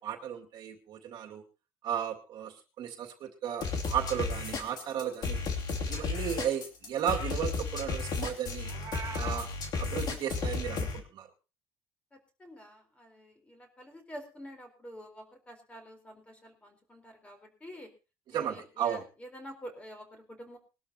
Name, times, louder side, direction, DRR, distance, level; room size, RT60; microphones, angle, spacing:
voice 1, 0.0-1.4 1.8-5.4 5.9-8.7 9.1-9.5 9.8-11.3 18.3-19.0, right 9 dB, 55° right, 2 dB, 2.3 m, -34 dB
sound 1, 3.6-11.0, left 4 dB, 45° left, 2.8 m, -33 dB
Meow, 8.6-9.5, right 7 dB, 35° right, 2.8 m, -41 dB
voice 2, 12.1-17.9 18.3-20.6, equal, 15° left, 4 dB, 4.1 m, -48 dB
21.5 x 12.5 x 2.9 m, 0.32 s
cardioid pair, 160°, 9 cm